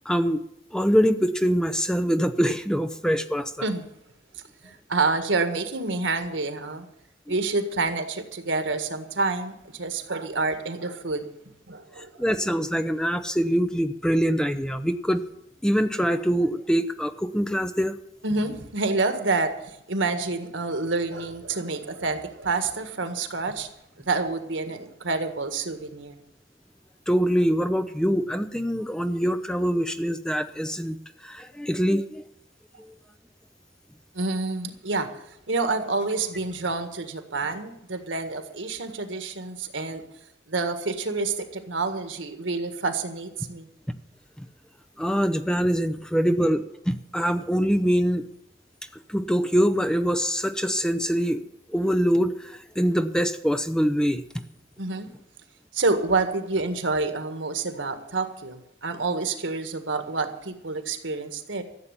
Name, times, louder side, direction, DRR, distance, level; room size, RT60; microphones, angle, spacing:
voice 1, 0.1-0.4 0.7-3.5 12.0-15.2 15.6-18.0 27.1-31.0 31.2-32.2 32.8-32.9 44.4-44.5 45.0-48.2 49.1-51.4 51.7-54.2, equal, 5° left, 10 dB, 0.6 m, -24 dB
voice 2, 4.6-6.9 7.3-11.2 11.7-12.1 18.2-23.7 24.1-26.2 34.1-35.1 35.5-40.0 40.5-43.7 54.8-55.1 55.7-61.6, right 3 dB, 90° right, 8 dB, 1.7 m, -28 dB
14.0 x 7.5 x 9.8 m, 0.81 s
head